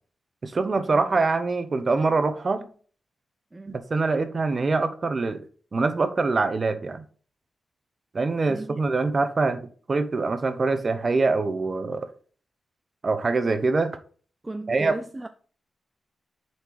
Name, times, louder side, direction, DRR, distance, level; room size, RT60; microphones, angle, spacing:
voice 1, 0.4-2.7 3.7-5.4 5.7-7.0 8.1-9.6 9.9-12.1 13.0-14.0 14.7-14.9, right 3 dB, 45° right, 0.9 m, -24 dB
voice 2, 8.5-8.8 14.4-15.3, right 2 dB, 25° right, 0.5 m, -36 dB
6.7 x 4.4 x 4.8 m
cardioid pair, 70°, 0 cm